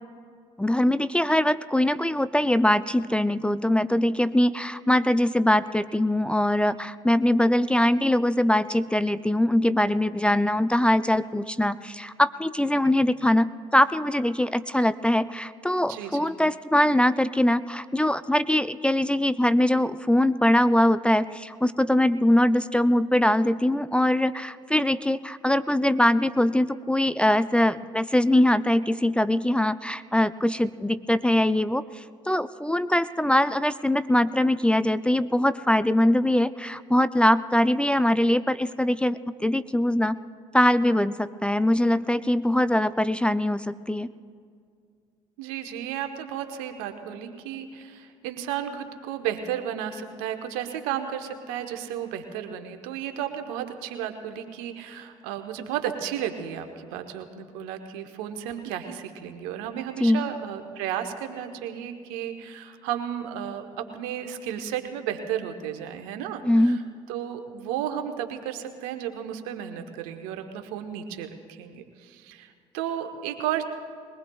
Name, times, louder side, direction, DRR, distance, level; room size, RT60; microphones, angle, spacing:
voice 1, 0.6-40.2 40.5-44.1 60.0-60.2 66.4-66.8, left 1 dB, 5° left, 14 dB, 0.4 m, -22 dB
voice 2, 15.8-16.4 45.4-66.8 67.1-73.6, right 10 dB, 80° right, 6 dB, 1.0 m, -33 dB
22.0 x 19.0 x 2.3 m, 2.2 s
hypercardioid pair, 55°, 15 cm